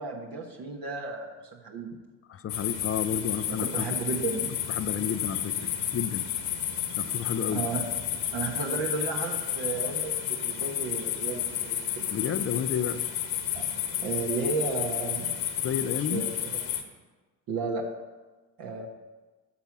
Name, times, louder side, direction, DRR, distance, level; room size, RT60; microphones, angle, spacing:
voice 1, 0.0-1.3 1.6-2.0 3.5-4.5 7.5-7.8 8.3-12.1 13.5-13.7 14.0-15.4 16.1-16.3 17.5-17.8 18.6-18.9, right 4 dB, 50° right, 1 dB, 1.5 m, -33 dB
voice 2, 2.3-3.9 4.7-5.5 5.9-6.3 7.0-7.7 12.1-13.0 15.6-16.2, left 8 dB, 30° left, 12 dB, 0.6 m, -31 dB
sound 1, 2.5-16.8, left 10 dB, 50° left, 1.4 m, -31 dB
13.0 x 5.9 x 5.9 m, 1.3 s
figure-of-eight pair, 55°, 46 cm